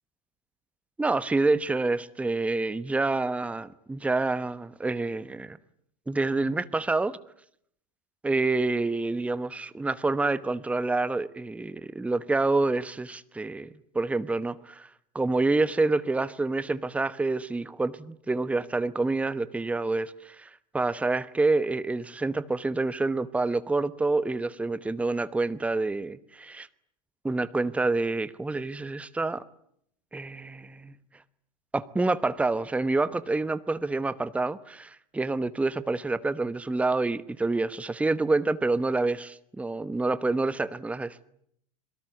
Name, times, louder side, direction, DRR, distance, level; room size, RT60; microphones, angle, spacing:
voice 1, 1.0-5.6 6.1-7.2 8.2-13.7 13.9-14.9 15.1-26.7 27.2-29.4 30.1-30.9 31.7-41.3, right 3 dB, 5° right, 16 dB, 1.0 m, -27 dB
27.5 x 23.0 x 8.2 m, 0.70 s
figure-of-eight pair, 85°, 21 cm